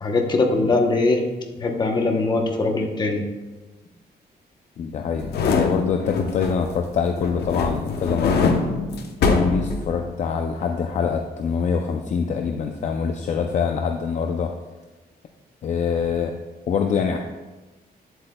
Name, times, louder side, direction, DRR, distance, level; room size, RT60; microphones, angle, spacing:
voice 1, 0.0-1.2 1.6-3.3, left 3 dB, 25° left, 2 dB, 0.9 m, -21 dB
voice 2, 4.8-8.5 9.2-14.5 15.6-16.3 16.7-17.2, left 6 dB, 45° left, 4 dB, 0.4 m, -24 dB
torch slow movements, 5.1-6.8 7.2-10.3 10.6-10.7, left 4 dB, 80° left, 0.9 m, -24 dB
9.6 x 7.8 x 2.3 m, 1.2 s
wide cardioid pair, 170°, 16 cm